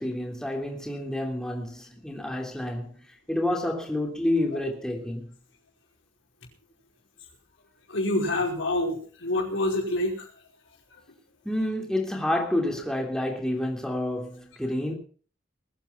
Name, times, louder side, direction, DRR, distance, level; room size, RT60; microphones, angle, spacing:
voice 1, 0.0-2.9 3.3-5.3 11.4-14.9, left 1 dB, 5° left, 3.1 m, -29 dB
voice 2, 7.9-10.3, left 1 dB, 85° left, 5.2 m, -27 dB
20.5 x 9.1 x 5.8 m
head